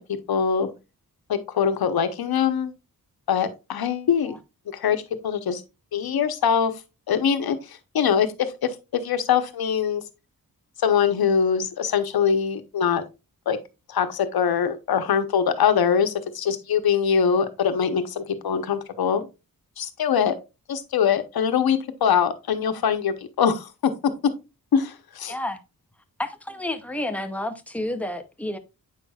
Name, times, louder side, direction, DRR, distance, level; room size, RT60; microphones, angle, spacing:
voice 1, 0.3-0.7 1.3-2.7 3.3-4.3 4.7-5.6 5.9-6.7 7.1-10.0 10.8-13.0 13.5-13.6 13.9-19.3 19.8-20.3 20.7-23.9 24.7-25.3, left 7 dB, 80° left, 0.9 m, -23 dB
voice 2, 25.3-25.6 26.2-28.6, left 1 dB, 5° left, 0.5 m, -30 dB
8.2 x 5.6 x 2.3 m
wide cardioid pair, 175°, 36 cm